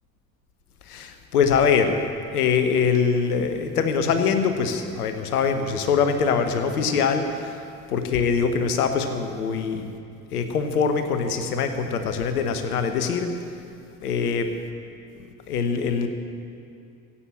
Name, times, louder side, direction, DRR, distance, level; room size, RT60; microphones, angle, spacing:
voice 1, 0.9-2.0 2.3-7.5 7.9-10.0 10.3-13.4 14.0-14.5 15.5-16.1, left 6 dB, 90° left, 7 dB, 1.0 m, -23 dB
15.0 x 8.6 x 7.5 m, 2.5 s
hypercardioid pair, 55°, 44 cm